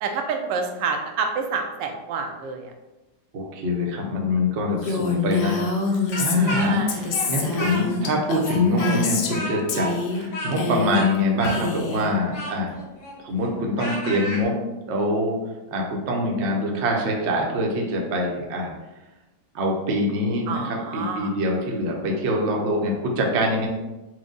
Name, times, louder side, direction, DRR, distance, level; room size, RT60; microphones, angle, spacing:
voice 1, 0.0-2.7 6.5-7.0 20.5-21.3, right 5 dB, 90° right, 4 dB, 1.2 m, -28 dB
voice 2, 3.3-5.6 6.2-12.8 13.2-14.6 14.9-15.4 15.7-18.7 19.5-23.7, left 1 dB, 55° right, 0 dB, 0.8 m, -24 dB
Female speech woman speaking, 4.8-9.4 9.7-10.3 10.5-11.2 11.4-12.1, left 3 dB, 70° left, 1.1 m, -26 dB
Speech, 6.1-8.1 8.4-14.4, equal, 55° left, 1.3 m, -32 dB
4.7 x 2.1 x 3.7 m, 1.0 s
omnidirectional pair, 1.9 m